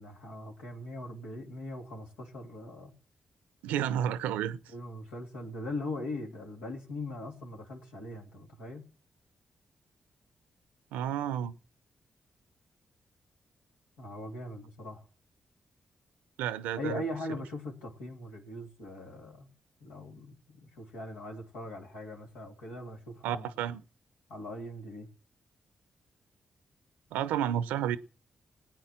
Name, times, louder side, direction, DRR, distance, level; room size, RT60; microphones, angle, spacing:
voice 1, 0.0-2.9 4.7-8.9 14.0-15.0 16.8-19.5 19.8-23.5 24.3-25.1, left 1 dB, 90° left, 3.0 m, -40 dB
voice 2, 3.6-4.6 10.9-11.5 16.4-17.0 23.2-23.8 27.1-28.0, right 10 dB, 90° right, 0.7 m, -31 dB
16.5 x 9.1 x 7.4 m
supercardioid pair, 40°, 3 cm